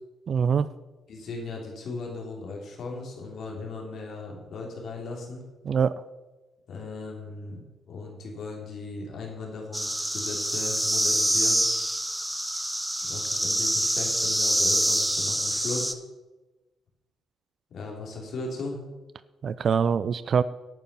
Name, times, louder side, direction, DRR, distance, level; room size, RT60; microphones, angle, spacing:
voice 1, 0.3-0.7 5.6-6.0 19.4-20.4, right 6 dB, 55° right, 16 dB, 0.4 m, -24 dB
voice 2, 1.1-5.5 6.7-11.6 13.0-16.0 17.7-18.8, left 3 dB, 60° left, 0 dB, 3.2 m, -37 dB
sound 1, 9.7-15.9, right 1 dB, 5° right, 1.1 m, -26 dB
11.5 x 8.9 x 5.6 m, 1.1 s
hypercardioid pair, 40°, 0 cm